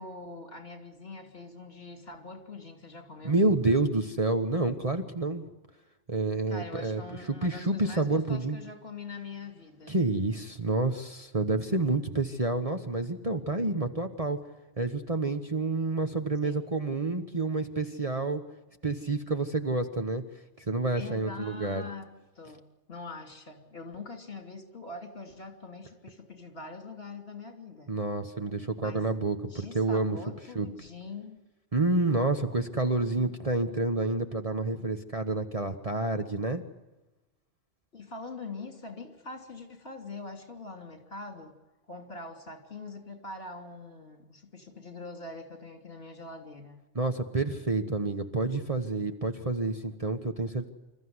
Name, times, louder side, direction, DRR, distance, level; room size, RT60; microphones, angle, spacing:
voice 1, 0.0-3.4 6.5-10.0 16.4-16.7 21.0-22.1 22.4-27.9 28.8-29.0 29.4-31.4 37.9-41.5 41.9-46.8, left 3 dB, 55° left, 5 dB, 3.3 m, -43 dB
voice 2, 3.2-5.4 6.1-7.0 7.4-8.6 9.9-14.4 14.8-18.4 18.8-20.2 20.6-21.8 27.9-30.2 30.5-30.7 31.7-36.6 46.9-50.7, right 2 dB, 30° right, 6 dB, 1.2 m, -29 dB
26.5 x 14.0 x 9.6 m, 1.1 s
omnidirectional pair, 1.3 m